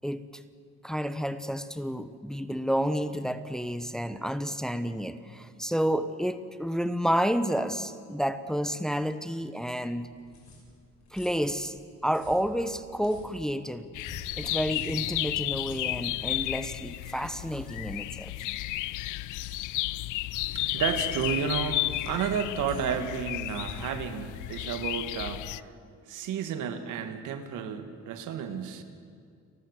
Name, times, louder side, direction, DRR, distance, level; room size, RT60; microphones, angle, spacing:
voice 1, 0.8-10.1 11.1-11.8 12.0-13.9 14.4-18.3, equal, ahead, 11 dB, 1.0 m, -30 dB
Pencil Sharpener, 9.9-25.0, left 3 dB, 65° left, 6.4 m, -50 dB
sound 1, 13.9-25.6, left 17 dB, 85° left, 0.5 m, -33 dB
voice 2, 20.5-25.8 26.0-28.8, right 7 dB, 90° right, 8 dB, 1.8 m, -32 dB
30.0 x 12.0 x 8.1 m, 2.3 s
cardioid pair, 90°, 30 cm